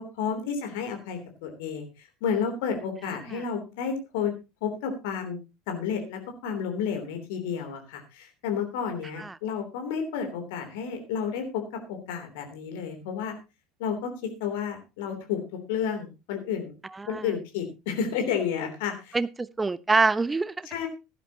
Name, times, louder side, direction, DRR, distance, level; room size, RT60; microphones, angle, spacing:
voice 1, 0.0-4.3 4.6-5.4 5.7-13.3 13.8-16.7 17.1-19.2 20.6-20.9, left 7 dB, 60° left, 5 dB, 3.2 m, -31 dB
voice 2, 19.1-20.7, right 3 dB, 15° right, 18 dB, 0.6 m, -25 dB
16.0 x 11.5 x 2.9 m, 0.27 s
figure-of-eight pair, 70°, 0 cm